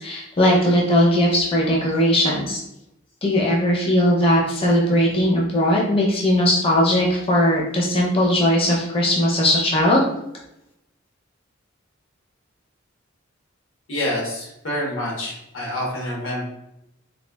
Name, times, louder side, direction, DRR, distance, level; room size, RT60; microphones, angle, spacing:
voice 1, 0.0-2.6 3.2-10.0, left 1 dB, 30° left, -3 dB, 0.5 m, -19 dB
voice 2, 13.9-16.4, left 1 dB, 90° left, -3 dB, 1.1 m, -27 dB
4.1 x 2.3 x 2.2 m, 0.83 s
head